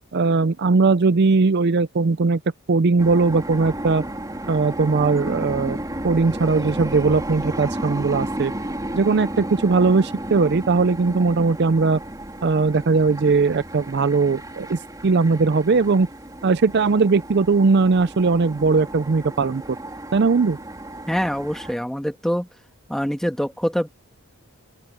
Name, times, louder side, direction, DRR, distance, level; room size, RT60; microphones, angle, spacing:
voice 1, 0.1-2.4 2.7-4.0 4.5-5.8 6.0-8.5 8.9-12.0 12.4-16.1 16.4-19.8 20.1-20.6, right 4 dB, 50° right, 0.5 m, -19 dB
sound 1, 3.0-21.8, right 1 dB, 15° right, 3.5 m, -33 dB
voice 2, 21.1-22.5 22.9-23.9, equal, ahead, 2.0 m, -24 dB
open air
head